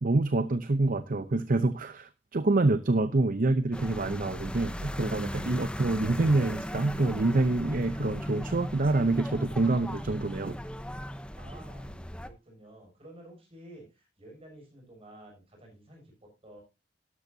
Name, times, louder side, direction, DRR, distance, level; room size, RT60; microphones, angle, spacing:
voice 1, 0.0-10.6, right 2 dB, 50° right, 12 dB, 0.7 m, -26 dB
sound 1, 3.7-12.3, equal, 5° left, 0.8 m, -37 dB
voice 2, 11.4-16.6, right 1 dB, 35° right, 0 dB, 6.6 m, -51 dB
12.5 x 12.0 x 2.7 m, 0.25 s
head